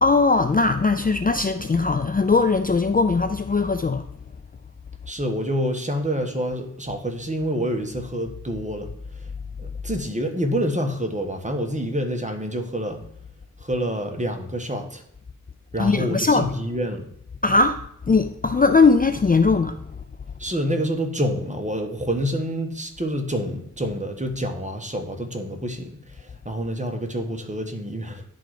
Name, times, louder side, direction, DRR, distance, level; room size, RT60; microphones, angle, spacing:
voice 1, 0.0-4.1 15.8-16.5 17.4-20.0, left 4 dB, 25° left, 0.4 m, -20 dB
voice 2, 5.1-9.3 9.6-13.0 13.6-15.0 15.7-17.0 20.4-28.2, equal, 20° right, 1.4 m, -27 dB
10.5 x 3.9 x 4.9 m
cardioid pair, 45°, 33 cm